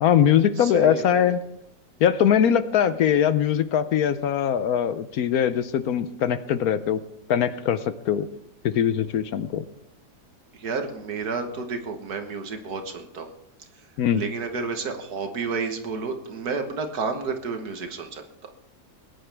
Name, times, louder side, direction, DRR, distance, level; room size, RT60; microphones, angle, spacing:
voice 1, 0.0-1.4 2.0-7.0 7.3-8.3 8.6-9.6 14.0-14.2, left 9 dB, 70° left, 12 dB, 1.1 m, -21 dB
voice 2, 0.6-1.4 10.5-13.3 14.1-18.5, right 4 dB, 70° right, 5 dB, 1.8 m, -31 dB
20.5 x 10.0 x 3.4 m, 0.76 s
omnidirectional pair, 1.8 m